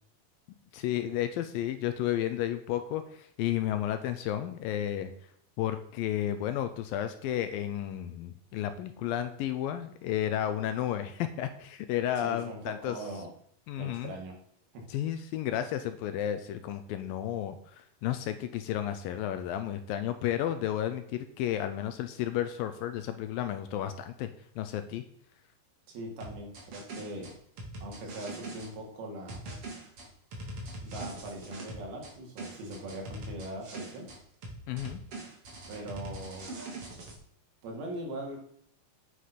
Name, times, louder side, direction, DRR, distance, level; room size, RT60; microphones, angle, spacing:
voice 1, 0.7-5.1 5.6-13.0 13.7-14.1 14.9-24.3 24.6-25.0 34.7-35.0, left 11 dB, 80° left, 9 dB, 2.3 m, -32 dB
voice 2, 12.2-13.3 13.8-14.4 14.7-14.9 25.9-27.4 27.8-29.4 30.8-34.1 35.7-36.5 37.6-38.4, right 1 dB, 75° right, -1 dB, 4.3 m, -41 dB
sound 1, 26.2-28.7 29.3-32.1 32.4-34.2 34.4-37.2, right 1 dB, 40° right, 2.6 m, -42 dB
9.6 x 6.2 x 5.8 m, 0.66 s
omnidirectional pair, 4.5 m